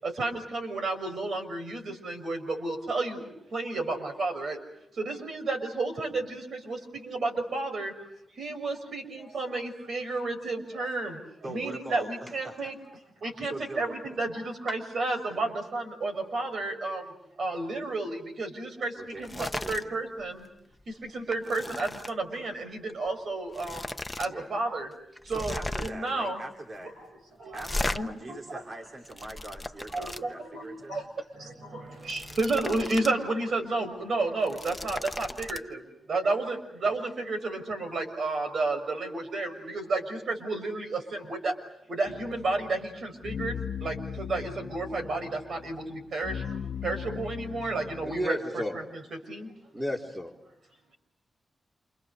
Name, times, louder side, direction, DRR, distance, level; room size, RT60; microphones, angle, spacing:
voice 1, 0.0-4.6 4.9-7.9 8.4-11.2 11.5-12.7 13.2-17.1 17.4-20.5 20.9-23.9 24.2-24.9 25.2-26.4 27.4-28.6 29.9-31.0 31.3-41.5 41.9-49.5, right 2 dB, 70° right, 5 dB, 6.4 m, -32 dB
voice 2, 11.4-12.7 13.4-14.2 15.1-15.6 19.0-20.0 21.6-21.8 24.2-24.5 25.2-26.9 27.4-30.9, right 2 dB, 45° right, 3 dB, 2.9 m, -43 dB
sound 1, 19.2-19.8 20.2-20.5 20.8-22.2 23.1-23.2 23.5-24.3 24.6-24.7 25.2-26.1 27.5-28.0 28.8-30.2 31.9-33.1 33.5-33.6 34.3-35.6, left 1 dB, 10° left, 1.0 m, -36 dB
sound 2, 42.1-48.3, left 7 dB, 75° left, 1.0 m, -39 dB
voice 3, 48.0-48.8 49.7-50.3, equal, 10° right, 1 dB, 3.7 m, -32 dB
28.5 x 28.0 x 6.7 m, 0.76 s
wide cardioid pair, 100°, 0 cm